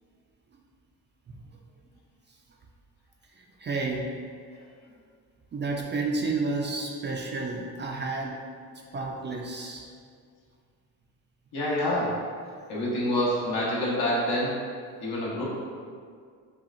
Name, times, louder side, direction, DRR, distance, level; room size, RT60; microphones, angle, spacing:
voice 1, 3.3-4.1 5.5-8.5 8.9-9.9, right 3 dB, 30° right, 0 dB, 0.4 m, -31 dB
voice 2, 11.5-12.2 12.7-14.6 15.0-15.4, left 1 dB, 70° left, -6 dB, 1.2 m, -27 dB
5.6 x 2.4 x 2.6 m, 2.1 s
supercardioid pair, 75°, 40 cm